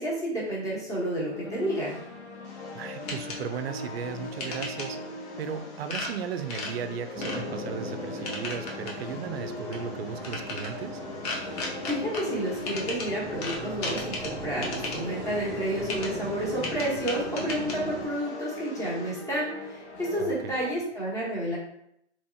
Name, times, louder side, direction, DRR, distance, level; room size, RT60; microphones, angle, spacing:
voice 1, 0.0-1.9 11.9-21.6, right 1 dB, 10° left, -6 dB, 1.1 m, -30 dB
sound 1, 1.3-20.7, left 2 dB, 70° left, 1.0 m, -41 dB
sound 2, 2.4-19.2, left 2 dB, 35° left, 0.9 m, -39 dB
voice 2, 2.7-5.0 5.4-11.0 20.2-20.5, right 7 dB, 60° right, 9 dB, 0.5 m, -36 dB
sound 3, 7.1-18.1, right 1 dB, 20° right, 1.0 m, -38 dB
3.3 x 3.0 x 2.7 m, 0.74 s
hypercardioid pair, 135°, 35 cm